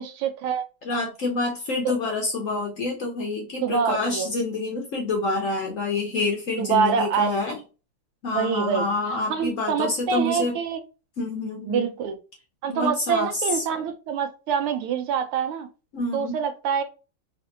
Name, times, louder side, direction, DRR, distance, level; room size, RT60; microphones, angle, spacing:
voice 1, 0.0-0.6 1.8-1.9 3.6-4.3 6.6-7.4 8.3-8.9 9.3-10.8 11.6-12.1 12.6-15.7 16.1-16.8, right 7 dB, 85° right, 7 dB, 1.6 m, -25 dB
voice 2, 0.8-7.6 8.2-10.6 11.2-11.9 12.7-13.6 15.9-16.4, left 3 dB, 60° left, 1 dB, 0.8 m, -27 dB
4.1 x 2.5 x 2.7 m, 0.32 s
omnidirectional pair, 2.4 m